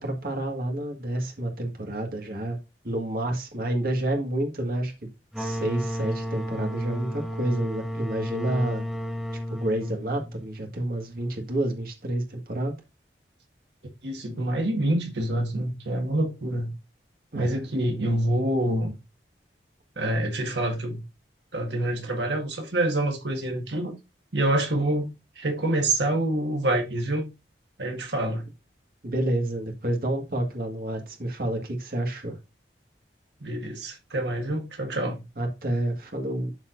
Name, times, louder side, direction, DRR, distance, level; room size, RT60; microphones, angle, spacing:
voice 1, 0.0-2.6 2.8-5.1 5.4-8.8 9.5-12.7 17.3-17.6 29.0-32.3 35.4-36.5, right 1 dB, 55° right, 1.7 m, -29 dB
sound 1, 5.3-10.8, equal, ahead, 1.2 m, -33 dB
voice 2, 14.0-16.7 17.3-18.9 20.0-21.0 21.5-23.9 24.3-25.1 25.3-27.3 27.8-28.5 33.4-35.2, right 1 dB, 80° right, 1.6 m, -26 dB
12.5 x 4.3 x 2.5 m
head